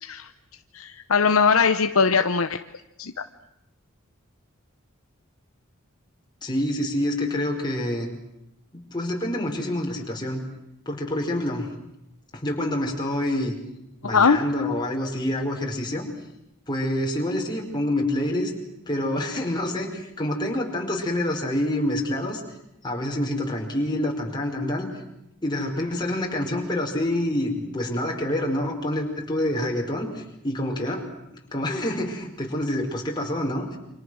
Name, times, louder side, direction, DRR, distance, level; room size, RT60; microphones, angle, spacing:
voice 1, 0.7-2.6 3.0-3.1 14.0-14.4, left 5 dB, 80° left, 8 dB, 0.9 m, -20 dB
voice 2, 6.4-8.1 8.7-10.4 10.8-11.7 12.3-13.5 14.0-16.0 16.7-18.5 18.9-22.4 22.8-24.9 25.4-31.0 31.5-33.8, left 1 dB, 20° left, 0 dB, 5.1 m, -27 dB
29.0 x 26.5 x 6.4 m, 0.85 s
head